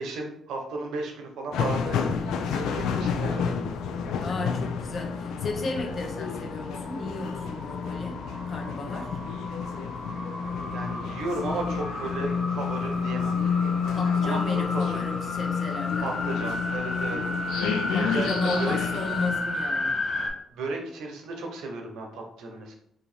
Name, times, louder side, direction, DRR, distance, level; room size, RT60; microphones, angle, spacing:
voice 1, 0.0-3.5 10.7-13.3 14.2-15.1 16.0-17.2 18.0-18.3 18.6-18.8 20.5-22.7, right 3 dB, 80° right, 2 dB, 0.8 m, -34 dB
sound 1, 1.5-19.4, left 6 dB, 85° left, 0.4 m, -30 dB
voice 2, 4.2-8.2 8.5-9.2 13.9-16.1 17.9-20.0, left 2 dB, 45° left, 2 dB, 0.8 m, -34 dB
sound 2, 5.8-20.3, left 1 dB, 20° left, 1.0 m, -34 dB
2.7 x 2.6 x 4.2 m, 0.70 s
cardioid pair, 90°, 0 cm